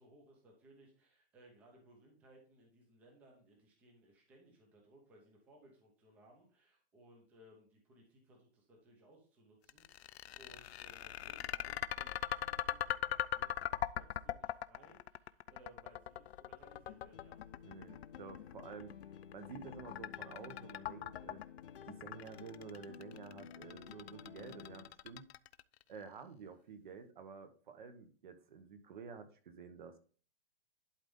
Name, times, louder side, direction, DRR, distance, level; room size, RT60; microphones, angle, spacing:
voice 1, 0.0-17.5, right 1 dB, 5° right, 0 dB, 0.7 m, -63 dB
sound 1, 9.7-25.8, left 11 dB, 70° left, 0.5 m, -40 dB
sound 2, 16.9-24.9, left 8 dB, 55° left, 0.9 m, -53 dB
voice 2, 17.6-18.9 19.3-21.4 21.8-25.3 25.9-30.0, right 5 dB, 45° right, 9 dB, 1.1 m, -51 dB
11.5 x 4.0 x 3.6 m, 0.41 s
hypercardioid pair, 180°, 32 cm